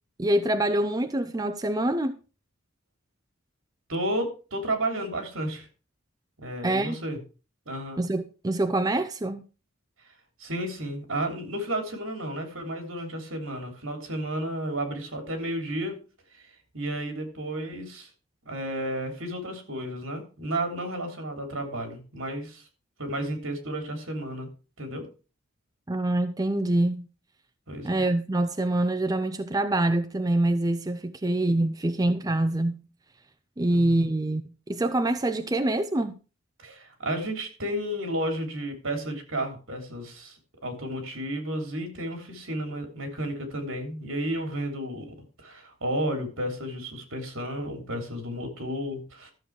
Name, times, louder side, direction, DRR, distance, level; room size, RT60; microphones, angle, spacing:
voice 1, 0.2-2.2 6.6-7.0 8.0-9.4 25.9-27.1 27.8-32.8 33.6-34.4 34.7-36.2, right 1 dB, 20° right, 0.5 m, -25 dB
voice 2, 3.9-5.7 6.4-7.2 7.6-8.0 10.4-16.0 16.3-16.4 16.7-18.1 18.4-22.7 23.0-24.5 24.8-25.0 27.7-28.0 33.7-34.1 36.6-40.4 40.6-49.3, right 1 dB, 65° right, 3.3 m, -32 dB
13.5 x 6.9 x 4.8 m
head